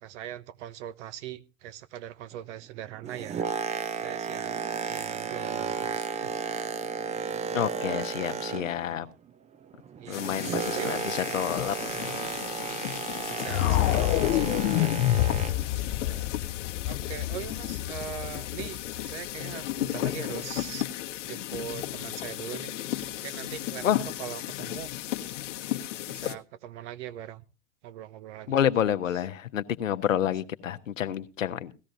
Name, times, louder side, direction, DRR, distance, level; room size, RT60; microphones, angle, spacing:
voice 1, 0.0-3.5 4.0-4.6 4.9-6.4 8.9-9.2 10.0-11.0 11.8-12.3 13.3-14.9 15.7-16.3 16.8-20.8 21.2-22.8 23.1-24.9 26.0-27.4 27.8-28.6, right 11 dB, 65° right, 14 dB, 1.0 m, -41 dB
Boat Water vehicle, 2.9-9.0 9.3-15.7 16.4-16.5, right 6 dB, 20° right, 0.6 m, -33 dB
voice 2, 7.5-9.1 10.1-11.8 15.8-15.9 23.8-24.0 28.5-31.7, left 10 dB, 85° left, 11 dB, 1.0 m, -28 dB
sound 1, 10.1-26.4, left 14 dB, 65° left, 1.2 m, -35 dB
sound 2, 13.5-19.5, left 17 dB, 50° left, 0.6 m, -28 dB
18.0 x 13.5 x 2.6 m, 0.31 s
hypercardioid pair, 100°, 38 cm